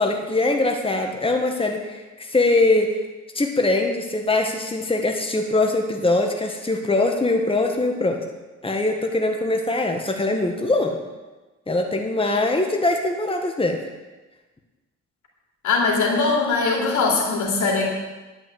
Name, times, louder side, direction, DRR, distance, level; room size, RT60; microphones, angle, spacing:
voice 1, 0.0-3.0 3.3-8.2 8.6-11.0 11.7-13.8, left 2 dB, 20° left, 3 dB, 1.6 m, -22 dB
voice 2, 15.6-17.8, left 4 dB, 80° left, -1 dB, 2.8 m, -21 dB
10.5 x 6.2 x 7.9 m, 1.2 s
cardioid pair, 60°, 29 cm